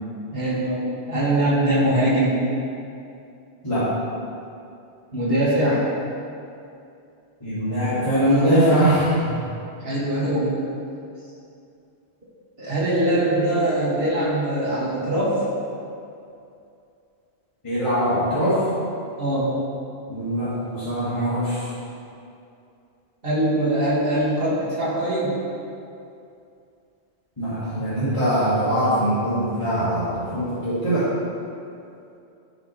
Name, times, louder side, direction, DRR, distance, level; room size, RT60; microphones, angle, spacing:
voice 1, 0.3-2.4 5.1-5.8 9.8-10.5 12.6-15.4 19.2-19.5 23.2-25.3, right 1 dB, 55° right, -8 dB, 2.5 m, -22 dB
voice 2, 7.4-9.4 13.0-13.3 17.6-18.6 20.1-21.7 27.4-31.1, equal, 30° left, -14 dB, 2.5 m, -22 dB
13.0 x 6.1 x 3.4 m, 2.6 s
omnidirectional pair, 1.1 m